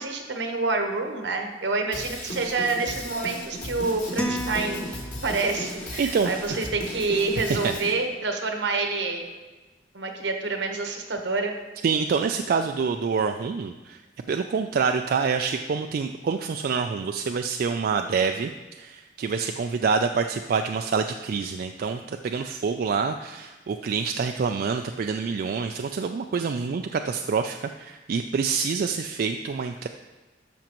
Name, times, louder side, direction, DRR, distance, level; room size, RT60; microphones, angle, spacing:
voice 1, 0.0-4.9 5.2-9.3 9.9-11.5, right 3 dB, 80° right, 4 dB, 1.1 m, -27 dB
Drum kit / Drum, 1.9-7.9, left 1 dB, 45° left, 2.4 m, -36 dB
sound 1, 4.2-5.7, equal, 5° left, 0.6 m, -32 dB
voice 2, 6.0-6.6 7.5-7.8 11.8-14.0 14.3-18.5 18.8-29.9, right 5 dB, 55° right, 6 dB, 0.3 m, -26 dB
12.5 x 5.9 x 3.0 m, 1.2 s
head